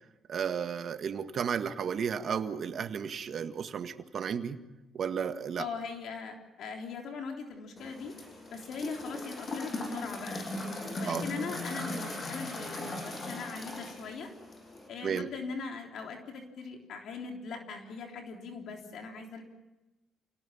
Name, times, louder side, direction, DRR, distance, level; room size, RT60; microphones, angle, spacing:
voice 1, 0.3-4.6 4.9-5.7 11.1-11.3 15.0-15.3, right 7 dB, 60° right, 8 dB, 1.7 m, -33 dB
voice 2, 5.6-8.1 8.5-14.3 14.9-19.4, left 5 dB, 75° left, 2 dB, 3.5 m, -40 dB
sound 1, 7.8-14.9, left 2 dB, 40° left, 6.7 m, -38 dB
29.0 x 18.5 x 7.2 m, 1.0 s
cardioid pair, 90°, 0 cm